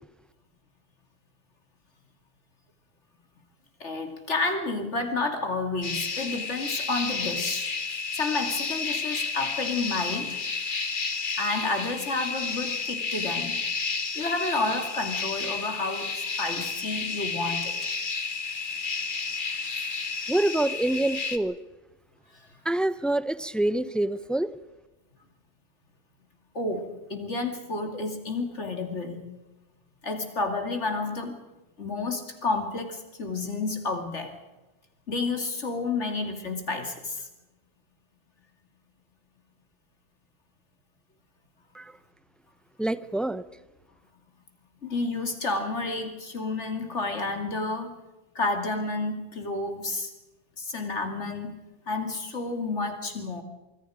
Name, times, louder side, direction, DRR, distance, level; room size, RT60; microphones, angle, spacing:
voice 1, 3.8-7.7 8.1-10.4 11.4-13.6 14.1-17.8 26.5-29.2 30.0-31.4 31.8-34.4 35.1-37.3 44.8-47.9 48.3-50.1 50.6-51.5 51.9-53.4, left 3 dB, 85° left, 5 dB, 3.1 m, -30 dB
sound 1, 5.8-21.4, left 4 dB, 45° left, 1.4 m, -31 dB
voice 2, 20.3-21.6 22.6-24.5 41.7-41.9 42.8-43.4, right 1 dB, ahead, 15 dB, 0.4 m, -26 dB
25.5 x 22.0 x 5.1 m, 1.1 s
omnidirectional pair, 1.2 m